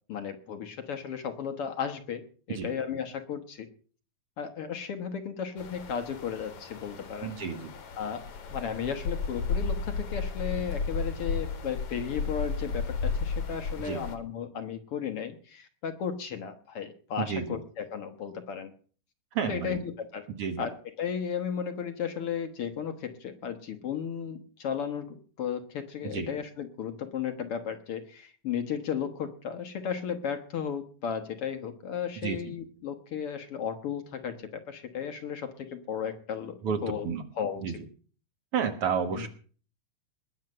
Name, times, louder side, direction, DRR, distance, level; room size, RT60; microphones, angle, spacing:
voice 1, 0.1-3.7 4.4-7.3 8.0-8.2 8.5-18.7 19.5-20.3 20.6-37.1 37.3-37.8 39.1-39.3, left 7 dB, 60° left, 8 dB, 1.9 m, -35 dB
sound 1, 5.6-14.2, left 5 dB, 75° left, 3.3 m, -34 dB
voice 2, 7.2-7.7 13.8-14.0 17.2-17.6 19.3-19.8 20.4-20.6 26.0-26.3 32.2-32.5 36.6-37.2 37.6-37.8 38.5-39.3, right 7 dB, 60° right, 8 dB, 2.0 m, -31 dB
20.5 x 7.4 x 6.6 m, 0.42 s
omnidirectional pair, 3.3 m